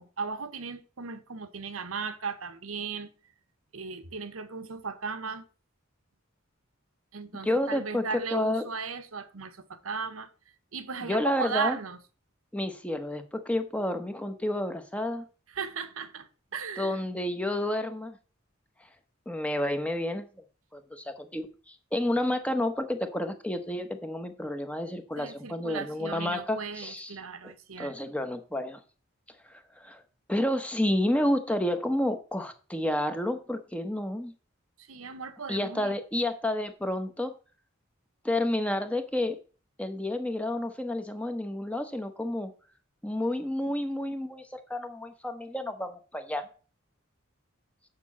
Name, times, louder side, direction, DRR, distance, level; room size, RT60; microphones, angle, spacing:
voice 1, 0.0-3.1 3.7-5.4 7.1-10.3 10.7-12.0 15.5-17.0 25.2-27.9 34.8-35.9, right 5 dB, 85° right, 1.0 m, -36 dB
voice 2, 7.4-8.6 11.0-11.8 12.5-15.2 16.8-18.2 19.3-20.2 20.7-27.2 27.4-27.5 27.8-28.8 29.5-30.0 30.3-34.3 35.5-37.3 38.2-39.4 39.8-42.5 43.0-44.4 44.7-46.5, left 1 dB, 5° left, 0.9 m, -30 dB
6.8 x 5.4 x 7.2 m
head